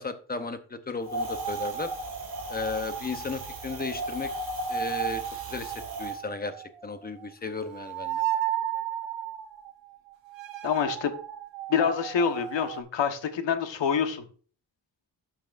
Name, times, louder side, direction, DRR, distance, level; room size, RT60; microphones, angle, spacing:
voice 1, 0.0-1.9 2.5-4.3 4.7-5.2 5.5-6.5 6.8-8.2, left 4 dB, 20° left, 9 dB, 0.7 m, -34 dB
Wind, 1.1-6.2, right 3 dB, 55° right, 2.5 m, -34 dB
sound 1, 4.7-7.2 7.6-12.8, right 12 dB, 85° right, 1.1 m, -34 dB
voice 2, 10.6-11.1 11.7-14.2, left 7 dB, 85° left, 7 dB, 1.3 m, -26 dB
12.0 x 5.9 x 2.5 m, 0.41 s
wide cardioid pair, 165°, 43 cm